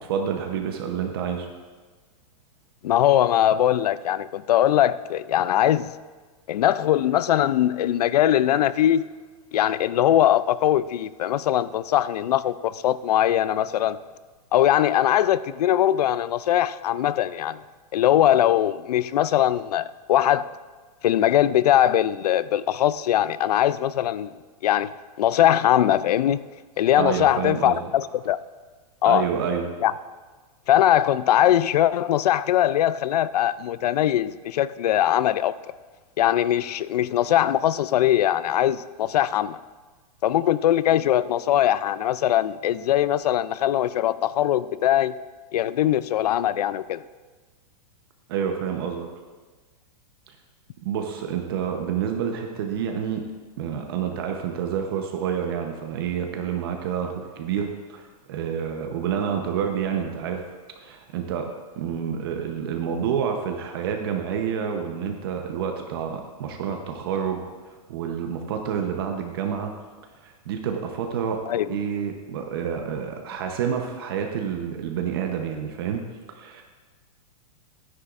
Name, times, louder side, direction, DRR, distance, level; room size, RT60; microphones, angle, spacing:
voice 1, 0.1-1.5 27.0-27.8 29.1-29.7 48.3-49.1 50.3-50.4 50.8-53.2 53.6-60.4 60.8-61.5 61.8-69.7 70.2-76.0 76.3-76.6, right 7 dB, 40° right, 0.8 m, -28 dB
voice 2, 2.8-5.9 6.5-9.1 9.5-14.0 14.5-17.6 17.9-20.5 21.0-24.3 24.6-24.9 25.2-26.4 26.8-28.4 29.0-29.3 29.8-29.9 30.7-35.5 36.2-39.6 40.2-45.2 45.5-47.0 71.5-71.7, left 12 dB, 80° left, 0.4 m, -21 dB
12.5 x 9.9 x 2.5 m
supercardioid pair, 175°, 20 cm